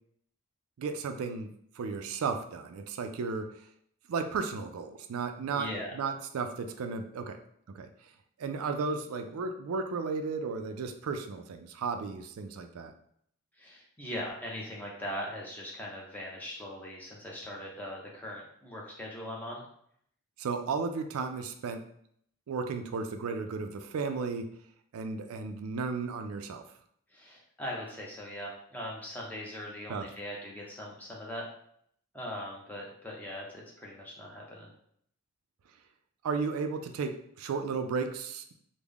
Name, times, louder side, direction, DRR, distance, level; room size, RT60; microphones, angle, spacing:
voice 1, 0.8-1.5 1.8-3.5 4.1-5.7 5.9-7.4 7.7-7.9 8.4-12.9 20.4-21.8 22.5-24.5 24.9-26.6 29.9-30.1 36.2-38.5, right 4 dB, 85° right, 7 dB, 0.4 m, -34 dB
voice 2, 5.4-6.0 13.5-19.6 27.1-31.4 32.1-34.7, left 1 dB, 10° left, -3 dB, 0.7 m, -40 dB
3.4 x 2.1 x 3.5 m, 0.67 s
head